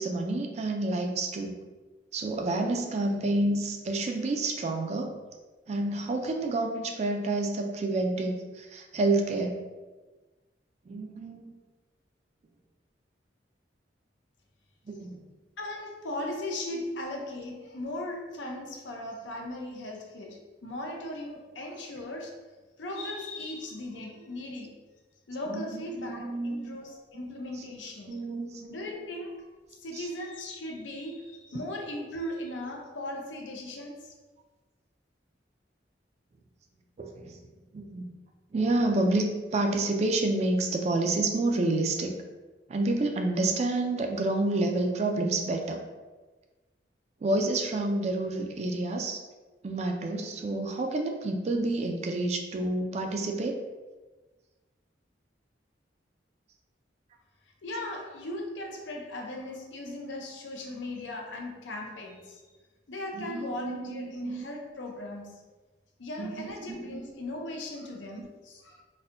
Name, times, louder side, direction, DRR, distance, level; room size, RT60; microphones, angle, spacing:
voice 1, 0.0-1.6 2.1-5.1 5.7-9.6 10.9-11.6 14.9-15.2 25.5-26.8 28.1-28.8 29.9-30.1 37.0-37.4 37.7-38.1 38.5-42.1 42.7-45.8 47.2-49.2 49.6-53.6 63.1-64.4 66.2-67.0, right 2 dB, 35° right, 3 dB, 0.3 m, -29 dB
voice 2, 15.6-22.3 22.8-24.7 25.3-28.2 28.7-29.5 29.8-34.1 57.6-62.4 62.9-65.4 66.0-68.8, left 1 dB, 90° left, 0 dB, 0.6 m, -38 dB
4.1 x 2.1 x 2.5 m, 1.3 s
head